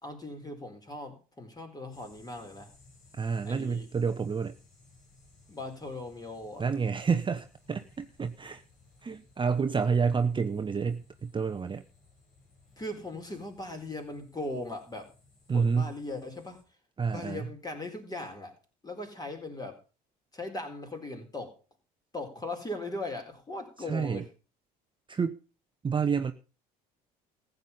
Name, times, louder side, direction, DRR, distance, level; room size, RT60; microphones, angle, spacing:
voice 1, 0.0-2.7 3.4-3.9 5.5-6.6 12.8-15.1 15.5-16.6 17.1-18.5 18.8-19.8 20.3-21.6 22.1-24.3, left 2 dB, 20° left, 4 dB, 4.2 m, -39 dB
sound 1, 1.9-16.6, left 3 dB, 70° left, 5.3 m, -60 dB
voice 2, 3.1-4.5 6.6-8.6 9.0-11.8 15.5-15.9 17.0-17.5 23.9-24.2 25.1-25.4 25.8-26.3, right 5 dB, 25° right, 9 dB, 0.8 m, -29 dB
15.0 x 8.0 x 5.5 m, 0.34 s
hypercardioid pair, 65°, 20 cm